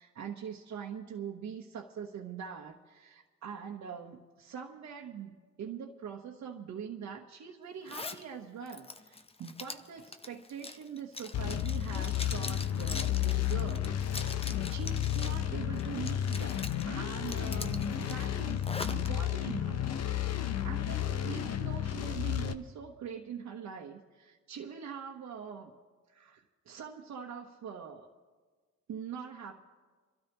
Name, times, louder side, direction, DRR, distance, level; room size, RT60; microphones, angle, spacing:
voice 1, 0.0-14.4 14.7-18.7 18.9-19.9 20.6-25.7 26.1-28.1 28.9-29.6, right 7 dB, 65° right, -2 dB, 1.2 m, -43 dB
Zipper (clothing), 7.9-8.2 8.7-15.4 15.8-16.8 17.2-19.1, left 3 dB, 20° left, 0.7 m, -43 dB
sound 1, 11.3-22.5, left 11 dB, 55° left, 0.9 m, -32 dB
28.5 x 12.5 x 3.1 m, 1.4 s
cardioid pair, 90°, 30 cm